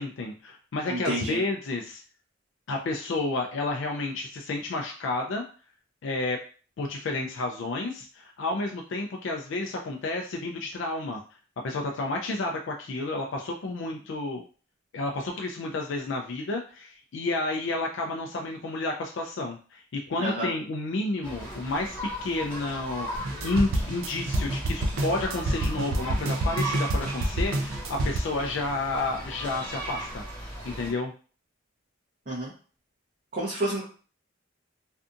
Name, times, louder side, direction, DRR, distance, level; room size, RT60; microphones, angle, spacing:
voice 1, 0.0-2.0 2.7-5.4 6.0-6.4 6.8-11.2 11.6-14.4 14.9-31.1, left 2 dB, 65° left, 2 dB, 0.4 m, -31 dB
voice 2, 0.9-1.4 20.2-20.5 32.3-32.5 33.3-33.8, right 1 dB, 40° right, -6 dB, 0.7 m, -29 dB
sound 1, 21.2-30.9, right 1 dB, 5° left, 0.9 m, -37 dB
sound 2, 23.1-28.2, right 1 dB, 75° right, 0.4 m, -28 dB
2.6 x 2.4 x 2.5 m, 0.39 s
head